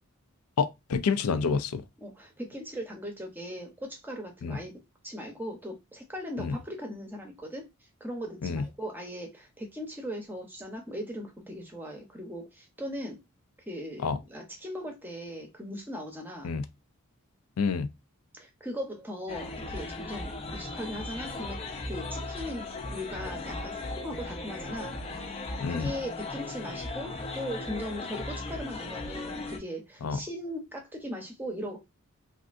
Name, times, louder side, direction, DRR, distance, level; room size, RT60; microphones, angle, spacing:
voice 1, 0.6-1.8 4.4-4.6 6.4-6.5 8.4-8.6 14.0-14.2 16.4-16.6 17.6-17.9 25.6-25.9 30.0-30.2, left 5 dB, 85° left, 0.4 m, -28 dB
voice 2, 2.0-4.7 5.0-7.7 8.0-13.2 13.7-16.5 18.3-25.0 25.7-31.8, equal, 10° right, 0.7 m, -39 dB
sound 1, 19.3-29.6, left 2 dB, 25° left, 0.4 m, -37 dB
3.3 x 2.5 x 2.5 m
head